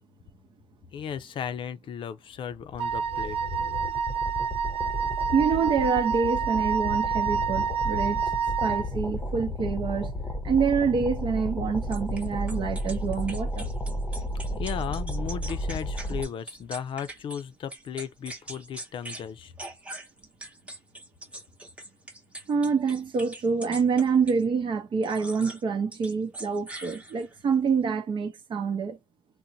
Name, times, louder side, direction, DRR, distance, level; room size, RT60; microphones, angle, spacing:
voice 1, 0.9-3.4 14.1-19.5, left 8 dB, 65° left, 0.4 m, -36 dB
sound 1, 2.5-16.2, left 1 dB, 15° left, 0.7 m, -33 dB
Wind instrument woodwind instrument, 2.8-8.9, right 7 dB, 85° right, 0.5 m, -28 dB
voice 2, 5.3-10.1 10.4-13.7 22.5-29.0, right 5 dB, 60° right, 0.8 m, -26 dB
sound 2, 11.9-17.4 17.7-19.3 19.6-24.4 25.0-25.6 25.9-27.4, right 1 dB, 15° right, 0.8 m, -42 dB
3.8 x 2.0 x 2.6 m
cardioid pair, 130°, 9 cm